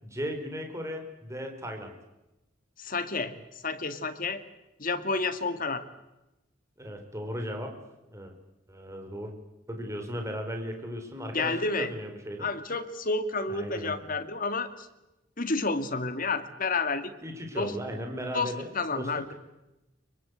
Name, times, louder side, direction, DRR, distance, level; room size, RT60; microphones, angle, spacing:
voice 1, 0.0-1.9 6.8-7.8 8.1-8.3 8.7-9.3 9.7-12.5 13.5-14.0 17.2-19.3, equal, 15° right, 4 dB, 4.3 m, -36 dB
voice 2, 2.8-3.4 3.6-4.4 4.8-5.8 11.3-11.9 12.4-14.9 15.4-17.1 17.5-17.8 18.3-19.3, left 3 dB, 45° left, 9 dB, 2.2 m, -30 dB
24.5 x 23.5 x 8.2 m, 0.95 s
head